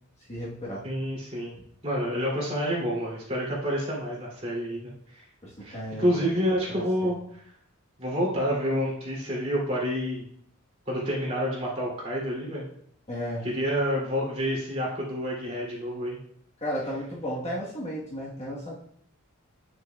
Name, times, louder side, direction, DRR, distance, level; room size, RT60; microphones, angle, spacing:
voice 1, 0.3-0.8 5.4-7.1 13.1-13.5 16.6-18.7, equal, 30° left, -5 dB, 1.2 m, -34 dB
voice 2, 0.8-1.5 1.8-5.2 5.6-7.1 8.0-10.2 10.9-12.7 13.4-16.2, equal, 30° right, -5 dB, 2.6 m, -28 dB
9.0 x 6.4 x 2.3 m, 0.67 s
head